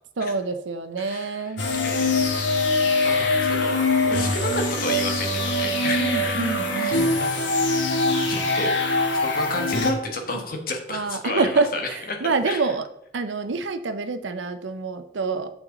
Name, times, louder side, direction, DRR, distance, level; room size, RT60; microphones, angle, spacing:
voice 1, 0.2-1.6 6.0-7.2 10.9-12.9 13.1-15.5, right 3 dB, 90° right, 9 dB, 0.6 m, -27 dB
voice 2, 1.0-1.6 1.8-2.3 3.0-6.4 6.7-12.2 12.4-12.7, left 2 dB, 50° left, 3 dB, 1.3 m, -32 dB
sound 1, 1.6-9.9, left 2 dB, 90° left, 1.3 m, -23 dB
7.6 x 6.0 x 3.8 m, 0.76 s
head